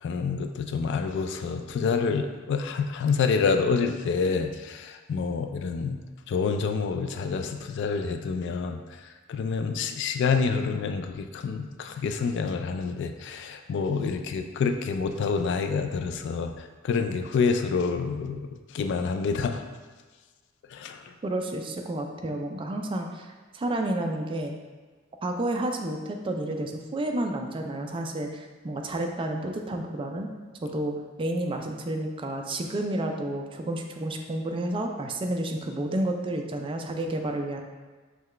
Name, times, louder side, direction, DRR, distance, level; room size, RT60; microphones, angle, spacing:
voice 1, 0.0-6.0 6.3-8.8 9.3-18.5 18.7-19.6 20.7-21.0, left 5 dB, 60° left, 6 dB, 0.3 m, -27 dB
voice 2, 21.2-24.6 25.2-30.3 30.6-37.6, right 1 dB, 25° right, 3 dB, 0.4 m, -30 dB
5.6 x 2.3 x 3.2 m, 1.4 s
head